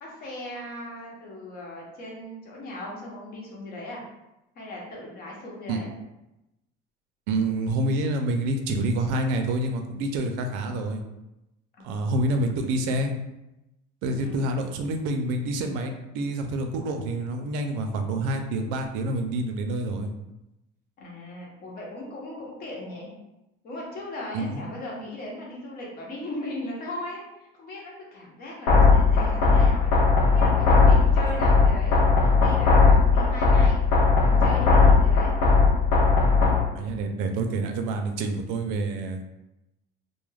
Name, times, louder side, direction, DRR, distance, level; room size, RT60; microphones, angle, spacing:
voice 1, 0.0-4.0 4.5-5.9 11.7-12.3 14.2-14.7 21.0-23.1 23.6-29.9 30.2-35.3, left 1 dB, 45° left, -3 dB, 0.8 m, -38 dB
voice 2, 7.3-11.0 11.8-13.1 14.0-20.1 24.3-24.6 31.3-31.4 36.8-39.2, right 2 dB, 85° right, 5 dB, 0.4 m, -27 dB
sound 1, 28.7-36.7, left 4 dB, 90° left, 0.6 m, -18 dB
2.2 x 2.0 x 3.2 m, 0.93 s
cardioid pair, 140°, 20 cm